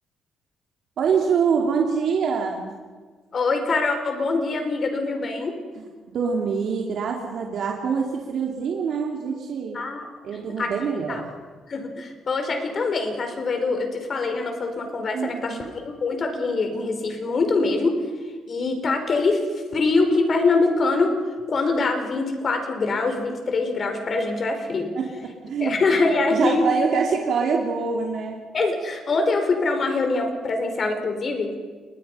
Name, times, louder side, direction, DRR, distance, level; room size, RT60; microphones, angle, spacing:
voice 1, 1.0-2.7 5.8-5.9 6.1-9.8 10.2-11.3 15.1-15.7 24.9-25.8 26.3-28.4, right 5 dB, 65° right, 0 dB, 2.8 m, -25 dB
voice 2, 3.3-5.5 9.7-10.7 11.1-11.2 11.7-18.0 18.5-19.4 19.7-21.1 21.5-24.9 25.6-26.7 28.5-31.5, left 3 dB, 45° left, 5 dB, 5.0 m, -24 dB
29.0 x 21.5 x 5.7 m, 1.5 s
cardioid pair, 90°, 0 cm